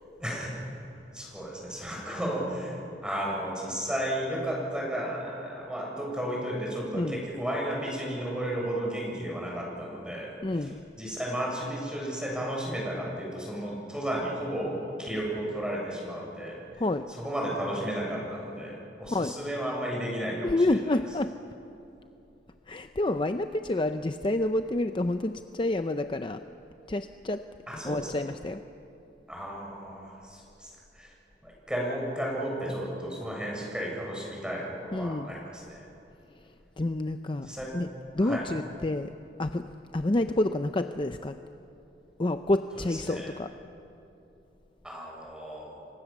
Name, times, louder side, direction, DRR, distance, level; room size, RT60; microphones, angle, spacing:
voice 1, 0.2-0.5 1.1-10.7 11.0-16.8 17.1-20.9 27.7-28.1 29.3-31.2 31.4-35.9 37.4-37.7 38.2-38.4 42.7-43.3 44.8-45.8, equal, 5° right, -2 dB, 7.3 m, -33 dB
voice 2, 10.4-10.8 16.8-17.1 19.1-19.3 20.4-21.4 22.7-26.4 26.9-27.4 27.8-28.6 34.9-35.3 36.8-37.9 38.2-39.1 39.4-41.4 42.2-43.5, left 2 dB, 30° left, 8 dB, 0.6 m, -28 dB
30.0 x 24.0 x 7.4 m, 2.8 s
head